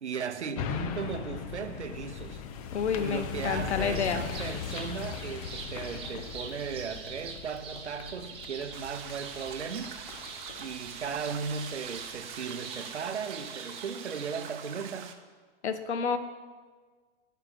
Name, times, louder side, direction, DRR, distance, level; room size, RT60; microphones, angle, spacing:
voice 1, 0.0-2.4 3.0-10.0 10.6-15.1, right 6 dB, 80° right, 0.7 m, -37 dB
sound 1, 0.6-12.0 12.5-12.6, left 7 dB, 35° left, 0.5 m, -39 dB
voice 2, 2.7-4.2 15.6-16.2, left 6 dB, 70° left, 0.8 m, -29 dB
sound 2, 3.9-14.4, right 5 dB, 15° right, 0.8 m, -45 dB
sound 3, 8.7-15.1, right 8 dB, 45° right, 0.7 m, -44 dB
13.5 x 5.5 x 2.6 m
figure-of-eight pair, 110°, 34 cm